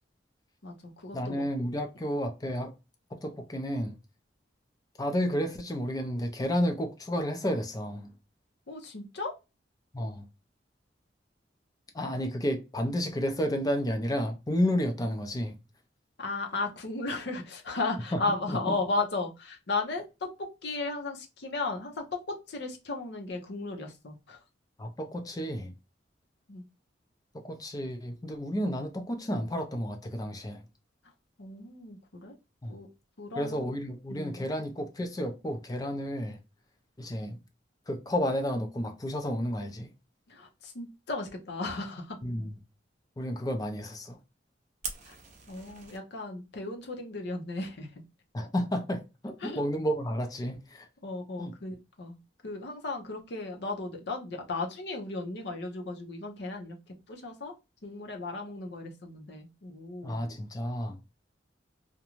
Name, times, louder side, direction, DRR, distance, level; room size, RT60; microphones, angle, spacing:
voice 1, 0.6-1.4 8.7-9.3 16.2-24.4 26.5-26.6 31.4-32.3 32.7-32.9 33.2-33.7 34.1-34.4 40.3-42.2 45.1-45.2 45.5-47.9 49.4-49.6 51.0-52.2 52.4-56.8 57.1-57.5 57.8-60.2, left 3 dB, 65° left, 0.7 m, -35 dB
voice 2, 1.1-2.7 3.1-4.0 5.0-8.1 9.9-10.3 11.9-15.6 18.1-18.2 18.5-18.6 24.8-25.7 27.3-30.6 32.6-32.8 33.4-36.4 37.0-37.4 37.9-39.9 42.2-42.5 43.2-44.2 48.3-50.9 51.4-51.5 60.0-61.0, equal, 20° left, 0.5 m, -31 dB
Fire, 44.8-46.0, right 5 dB, 40° right, 0.6 m, -41 dB
2.5 x 2.2 x 2.9 m
head